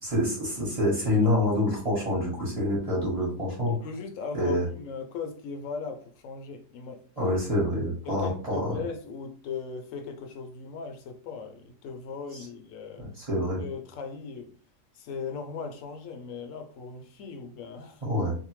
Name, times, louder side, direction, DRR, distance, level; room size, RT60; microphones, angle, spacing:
voice 1, 0.0-3.8 4.3-4.7 7.2-8.8 13.0-13.6 18.0-18.3, left 1 dB, 30° right, 1.2 m, -26 dB
voice 2, 3.7-7.0 8.1-13.1 13.6-14.6 14.9-18.0, left 5 dB, 80° left, 0.9 m, -38 dB
2.7 x 2.1 x 3.0 m
omnidirectional pair, 1.3 m